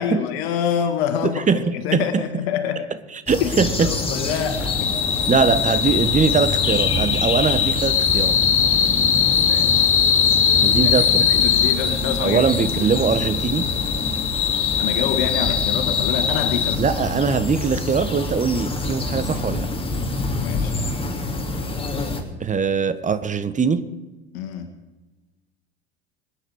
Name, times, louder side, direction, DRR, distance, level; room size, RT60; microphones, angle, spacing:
voice 1, 0.0-2.9 3.4-3.5 3.8-4.9 9.3-9.9 10.8-10.9 11.2-12.4 12.7-12.8 14.8-16.8 17.1-17.2 20.4-21.0 24.3-24.7, left 8 dB, 65° left, 1.8 m, -26 dB
voice 2, 1.2-2.2 3.3-3.9 5.3-8.4 10.6-11.3 12.2-13.7 16.8-19.7 22.4-23.9, right 5 dB, 25° right, 1.4 m, -21 dB
sound 1, 3.3-22.2, left 2 dB, 15° left, 2.9 m, -27 dB
sound 2, 4.5-16.8, left 8 dB, 40° left, 1.9 m, -21 dB
26.0 x 10.0 x 4.9 m
hypercardioid pair, 70°, 33 cm